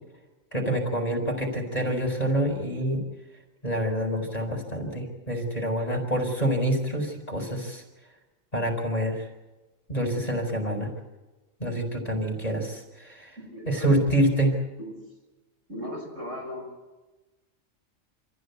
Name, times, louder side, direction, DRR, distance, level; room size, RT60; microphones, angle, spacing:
voice 1, 0.5-3.0 3.6-7.8 8.5-9.3 9.9-10.9 11.6-13.4 13.6-14.6, right 1 dB, 30° left, 1 dB, 4.7 m, -27 dB
voice 2, 13.4-13.9 14.8-14.9 15.7-16.7, equal, 65° right, -1 dB, 8.2 m, -37 dB
27.0 x 15.0 x 8.3 m, 1.1 s
omnidirectional pair, 1.4 m